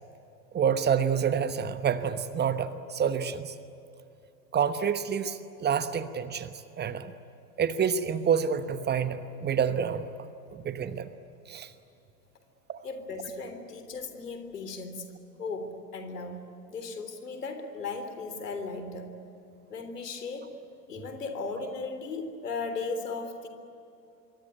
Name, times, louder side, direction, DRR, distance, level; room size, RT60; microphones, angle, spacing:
voice 1, 0.5-3.5 4.5-7.1 7.6-10.0 10.5-11.1 11.5-11.7 12.7-12.8, right 7 dB, 20° right, 12 dB, 1.1 m, -28 dB
voice 2, 12.8-15.1 15.4-16.4 16.7-19.1 19.7-20.6 20.9-23.5, left 3 dB, 75° left, 7 dB, 3.7 m, -36 dB
26.5 x 23.5 x 9.5 m, 2.8 s
figure-of-eight pair, 90°, 48 cm